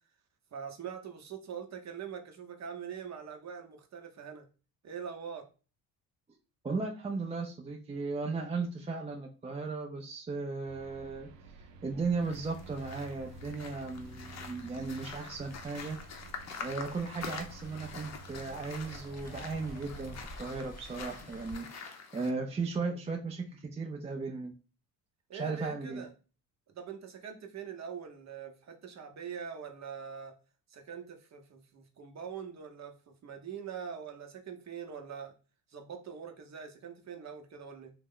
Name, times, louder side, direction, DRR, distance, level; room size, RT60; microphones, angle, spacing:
voice 1, 0.5-4.4 4.8-5.4 25.3-26.1 26.7-30.3 30.7-35.3 35.7-37.9, right 6 dB, 35° right, 5 dB, 0.8 m, -43 dB
voice 2, 6.6-11.3 11.8-16.0 16.6-24.5 25.3-26.0, right 4 dB, 15° right, 2 dB, 0.4 m, -36 dB
sound 1, 10.7-20.2, right 3 dB, 80° right, 0.5 m, -50 dB
sound 2, 12.2-22.3, left 5 dB, 35° left, 0.7 m, -46 dB
Waves surf, 15.0-21.6, equal, 20° left, 1.1 m, -52 dB
2.8 x 2.1 x 3.7 m, 0.34 s
supercardioid pair, 70°, 45 cm